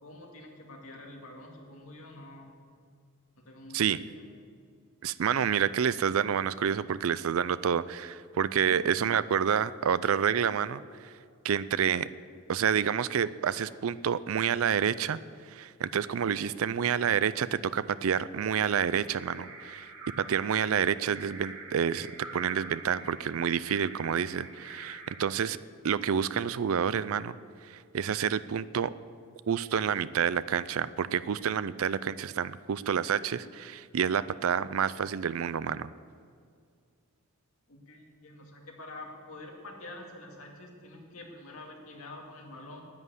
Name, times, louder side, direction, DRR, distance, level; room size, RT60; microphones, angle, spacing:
voice 1, 0.0-2.5 3.4-4.3 8.7-8.9 37.7-42.9, left 2 dB, 70° left, 0 dB, 2.3 m, -47 dB
voice 2, 5.0-11.1 11.4-12.1 12.5-15.2 15.5-19.9 20.2-25.6 25.8-27.3 27.6-28.9 29.5-35.9, right 7 dB, 65° right, 17 dB, 0.4 m, -28 dB
sound 1, 18.8-25.3, right 3 dB, 90° right, 2.3 m, -46 dB
10.5 x 9.6 x 8.2 m, 2.2 s
head